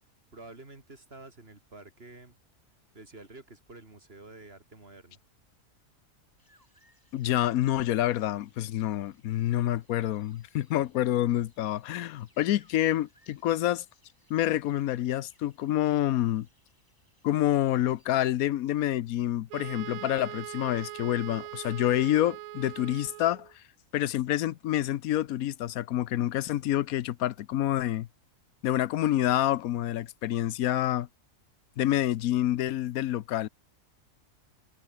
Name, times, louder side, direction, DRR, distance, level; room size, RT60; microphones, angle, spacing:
voice 1, 0.3-2.4 2.9-5.2, right 2 dB, 45° right, 3.7 m, -49 dB
sound 1, 6.4-18.3, equal, 15° left, 6.9 m, -68 dB
voice 2, 7.1-13.8 14.3-16.5 17.2-23.6 23.9-28.1 28.6-31.1 31.8-33.5, left 13 dB, 85° left, 1.1 m, -27 dB
Wind instrument woodwind instrument, 19.5-23.5, right 14 dB, 85° right, 1.1 m, -41 dB
omnidirectional pair, 1.5 m